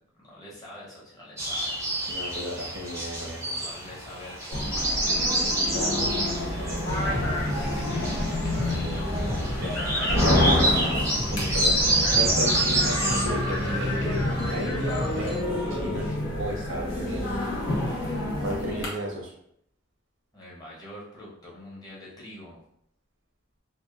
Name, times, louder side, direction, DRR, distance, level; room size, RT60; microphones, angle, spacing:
voice 1, 0.1-1.8 3.5-4.7 7.6-8.2 8.5-9.3 16.0-16.1 18.5-18.9 20.3-22.6, left 1 dB, 20° left, -6 dB, 0.7 m, -44 dB
sound 1, 1.4-13.3, right 1 dB, 15° right, 0.5 m, -28 dB
voice 2, 2.1-3.7 5.7-6.8 7.4-7.9 9.6-9.8 10.2-10.8 11.3-11.8 12.1-16.1 16.4-17.5 18.4-19.3, equal, 75° right, -1 dB, 0.7 m, -34 dB
sound 2, 4.5-18.9, left 1 dB, 85° left, 0.8 m, -29 dB
sound 3, 6.8-15.4, left 1 dB, 50° left, 0.7 m, -30 dB
2.7 x 2.2 x 2.3 m, 0.71 s
head